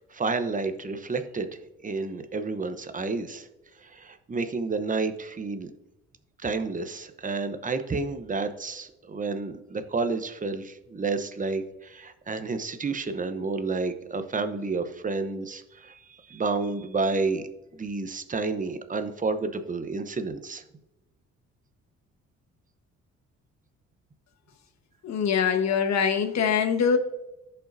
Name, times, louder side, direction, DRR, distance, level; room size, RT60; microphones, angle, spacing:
voice 1, 0.1-3.5 3.8-5.7 6.4-17.4 17.7-20.6, right 3 dB, 25° right, 9 dB, 0.9 m, -30 dB
voice 2, 25.0-27.0, left 7 dB, 65° left, 6 dB, 1.3 m, -23 dB
14.5 x 5.5 x 2.7 m, 0.94 s
cardioid pair, 90°, 30 cm